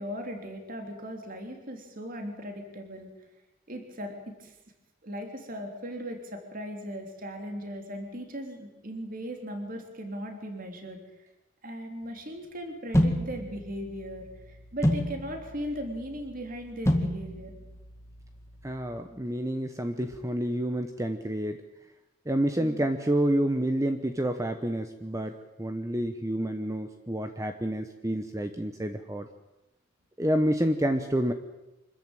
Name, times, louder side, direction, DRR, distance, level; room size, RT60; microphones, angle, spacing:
voice 1, 0.0-3.1 3.7-4.5 5.0-11.3 11.6-17.5 22.6-22.8, equal, 40° right, 4 dB, 3.4 m, -38 dB
sound 1, 12.9-19.0, equal, 15° left, 1.9 m, -31 dB
voice 2, 18.6-21.6 22.3-29.3 30.2-31.3, right 1 dB, 15° right, 7 dB, 0.9 m, -29 dB
25.5 x 14.0 x 9.1 m, 0.98 s
head